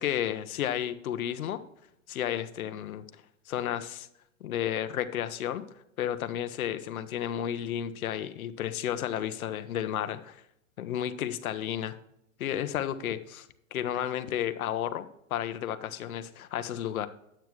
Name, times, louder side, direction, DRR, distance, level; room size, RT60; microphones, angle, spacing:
voice 1, 0.0-1.6 2.1-3.0 3.5-4.1 4.4-5.6 6.0-10.4 10.8-12.0 12.4-17.1, left 10 dB, 80° left, 11 dB, 1.0 m, -32 dB
9.4 x 8.9 x 3.1 m, 0.77 s
supercardioid pair, 160°, 43 cm